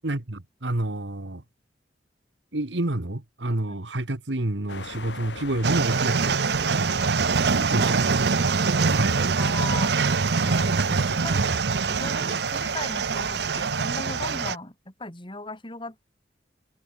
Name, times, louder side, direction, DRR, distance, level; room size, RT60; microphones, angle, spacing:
voice 1, 0.0-1.4 2.5-7.3 7.7-8.2 8.9-9.2, right 1 dB, 85° right, 1.9 m, -29 dB
sound 1, 4.7-14.5, left 2 dB, 85° left, 3.7 m, -43 dB
sound 2, 5.6-14.6, right 5 dB, 65° right, 0.7 m, -24 dB
sound 3, 5.8-13.5, right 1 dB, 30° right, 6.7 m, -51 dB
voice 2, 9.4-9.9 10.4-16.1, left 2 dB, 30° left, 5.4 m, -37 dB
head